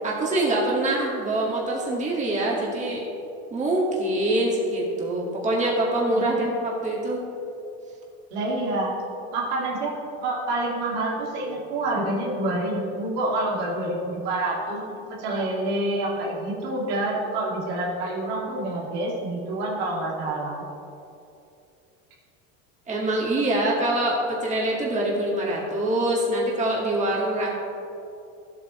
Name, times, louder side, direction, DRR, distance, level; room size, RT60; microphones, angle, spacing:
voice 1, 0.0-3.0 3.5-7.2 22.9-27.5, right 1 dB, 20° right, -4 dB, 1.9 m, -24 dB
voice 2, 8.3-8.9 9.3-9.9 10.2-14.8 15.2-20.6, right 2 dB, 80° right, -3 dB, 2.4 m, -27 dB
13.0 x 8.5 x 3.2 m, 2.7 s
supercardioid pair, 125°, 32 cm